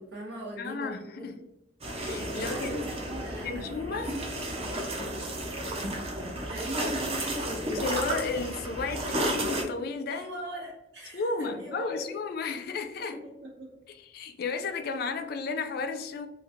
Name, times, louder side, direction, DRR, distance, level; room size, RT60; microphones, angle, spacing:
voice 1, 0.0-1.5 2.3-3.8 6.5-7.8 10.1-12.2 13.2-13.7, right 1 dB, 75° right, 1.2 m, -39 dB
voice 2, 0.6-1.3 2.0-2.9 3.4-4.1 7.7-10.2 11.1-13.2 14.1-16.3, left 4 dB, 60° left, 0.3 m, -33 dB
sound 1, 1.8-9.6, right 1 dB, 35° right, 0.5 m, -33 dB
3.0 x 2.4 x 2.5 m
head